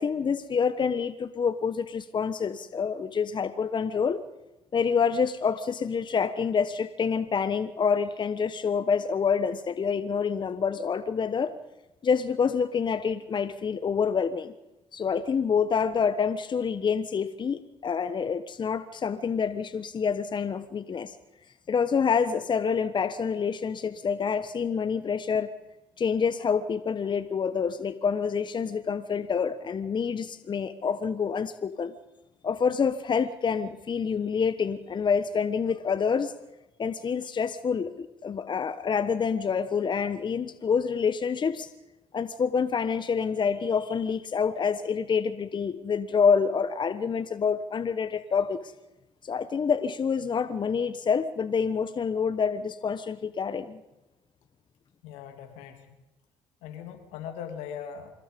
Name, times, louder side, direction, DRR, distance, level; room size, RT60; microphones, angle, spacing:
voice 1, 0.0-4.2 4.7-11.5 12.0-14.5 14.9-21.2 21.7-25.5 26.0-31.9 32.4-36.3 36.8-41.7 42.1-48.7 49.2-53.8, left 6 dB, 45° left, 13 dB, 1.2 m, -27 dB
voice 2, 55.0-55.9 56.6-58.1, left 8 dB, 85° left, 7 dB, 2.9 m, -40 dB
26.0 x 21.0 x 5.3 m, 0.98 s
supercardioid pair, 60°, 11 cm